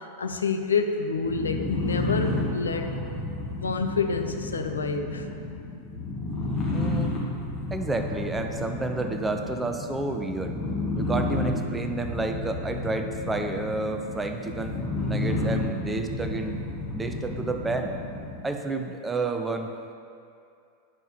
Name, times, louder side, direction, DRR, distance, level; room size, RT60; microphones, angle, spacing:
voice 1, 0.2-2.9 3.6-5.3, left 4 dB, 70° left, 5 dB, 0.5 m, -28 dB
sound 1, 1.2-18.4, left 2 dB, 30° left, 1.7 m, -31 dB
voice 2, 6.7-7.2 7.7-10.6 10.9-14.8 15.1-16.6 16.9-17.9 18.4-19.7, right 3 dB, 10° right, 5 dB, 0.5 m, -30 dB
10.5 x 5.4 x 2.9 m, 2.4 s
figure-of-eight pair, 90°, 0 cm